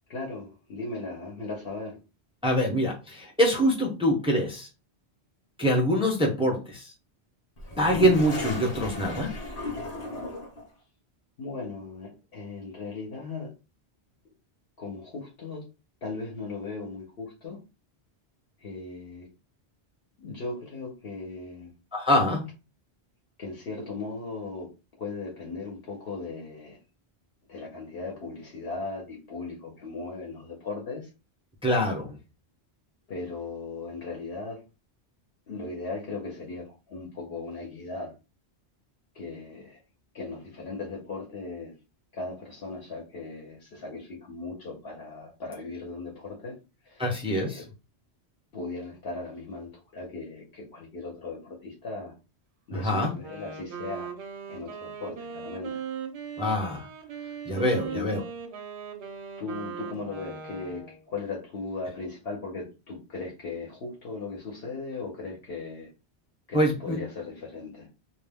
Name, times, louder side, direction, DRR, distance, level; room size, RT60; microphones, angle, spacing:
voice 1, 0.1-2.0 11.4-13.5 14.2-14.3 14.8-15.6 16.0-17.6 18.6-19.3 20.2-21.7 23.4-24.7 25.0-26.8 27.5-31.1 33.1-34.6 35.5-38.1 39.1-39.8 40.1-41.7 42.1-46.5 46.8-47.7 48.5-52.1 52.7-54.1 54.5-55.8 57.9-58.2 59.4-65.9 66.5-67.9, left 3 dB, 65° left, -3 dB, 1.0 m, -37 dB
voice 2, 2.4-4.7 5.6-6.9 7.8-9.3 21.9-22.4 31.6-32.2 47.0-47.6 52.7-53.1 56.4-56.9 57.5-58.2 66.5-67.0, equal, 5° right, -1 dB, 0.5 m, -24 dB
Toilet flush, 7.6-10.6, left 3 dB, 40° left, 0.8 m, -34 dB
Wind instrument woodwind instrument, 53.2-61.0, right 7 dB, 80° right, 0.8 m, -39 dB
2.4 x 2.1 x 3.3 m, 0.29 s
omnidirectional pair, 1.1 m